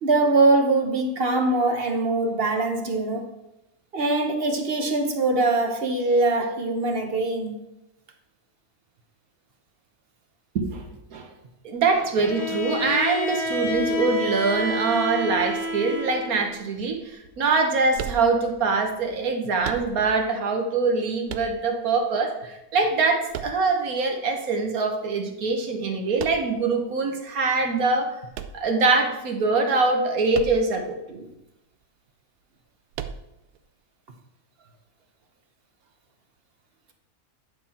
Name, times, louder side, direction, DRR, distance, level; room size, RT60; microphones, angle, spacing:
voice 1, 0.0-3.2 3.9-7.5 31.1-31.3, right 2 dB, 45° right, 1.1 m, -22 dB
voice 2, 11.6-28.1 28.5-31.0, right 4 dB, 70° right, 1.6 m, -23 dB
Bowed string instrument, 12.2-16.5, left 1 dB, 50° left, 1.6 m, -29 dB
sound 1, 17.9-18.7 19.6-20.3 21.3-22.0 23.3-24.1 26.2-26.7 28.3-29.2 30.3-30.9 31.2-31.3 32.9-33.6, right 9 dB, 90° right, 1.1 m, -36 dB
9.9 x 5.8 x 4.3 m
omnidirectional pair, 1.6 m